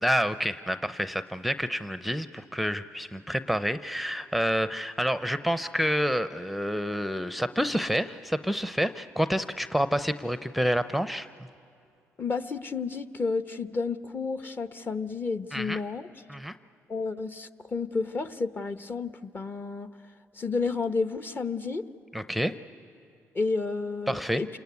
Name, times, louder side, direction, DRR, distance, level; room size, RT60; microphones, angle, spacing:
voice 1, 0.0-11.3 15.5-15.8 16.3-16.6 22.1-22.5 24.1-24.4, equal, ahead, 12 dB, 0.6 m, -28 dB
voice 2, 12.2-16.1 16.9-19.9 20.4-21.8 23.3-24.5, left 4 dB, 35° left, 11 dB, 1.0 m, -31 dB
28.0 x 20.0 x 9.6 m, 2.4 s
cardioid pair, 75°, 6 cm